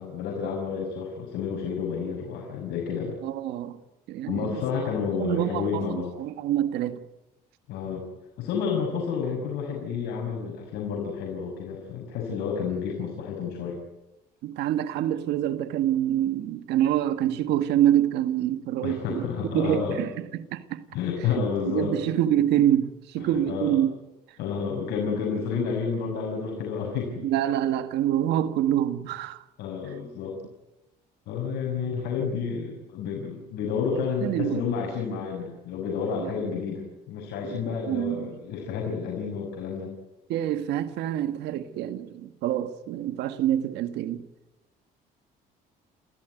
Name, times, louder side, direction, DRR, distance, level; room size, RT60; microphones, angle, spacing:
voice 1, 0.0-3.2 4.3-6.1 7.7-8.1 8.4-13.8 18.8-20.0 20.9-22.1 23.2-23.8 24.4-27.3 29.6-30.4 31.3-39.9, left 6 dB, 80° left, 6.2 m, -30 dB
voice 2, 3.2-3.8 4.1-4.9 5.2-7.0 14.4-19.2 19.5-20.8 21.6-23.9 27.2-29.4 33.9-34.6 36.2-36.3 37.4-38.3 40.3-44.2, right 11 dB, 85° right, 1.8 m, -26 dB
30.0 x 16.5 x 9.3 m
cardioid pair, 110°, 17 cm